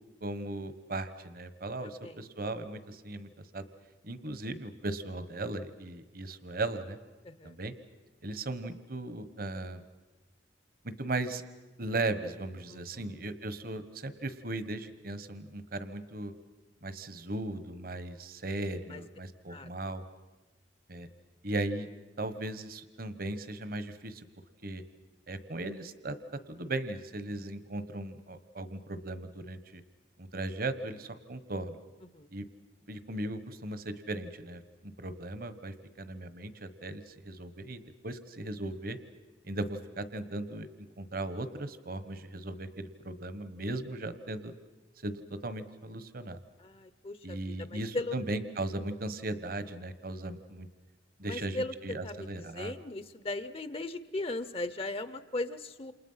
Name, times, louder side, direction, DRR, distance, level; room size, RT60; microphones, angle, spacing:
voice 1, 0.2-3.7 4.0-7.0 7.4-7.7 8.2-9.8 11.0-11.4 11.8-16.3 16.8-20.0 20.9-21.1 21.4-21.9 22.2-24.2 24.6-24.8 25.3-26.2 26.5-29.8 30.2-31.8 32.3-32.4 32.9-39.0 39.4-40.7 41.0-44.5 45.0-46.4 47.2-50.7 51.2-52.7, right 2 dB, 55° right, 12 dB, 1.3 m, -37 dB
voice 2, 7.2-7.5 12.7-13.2 18.9-19.0 19.5-19.7 32.1-32.3 46.6-48.2 51.2-51.7 52.0-55.9, left 2 dB, 35° left, 14 dB, 0.8 m, -38 dB
28.5 x 28.0 x 5.7 m, 1.2 s
head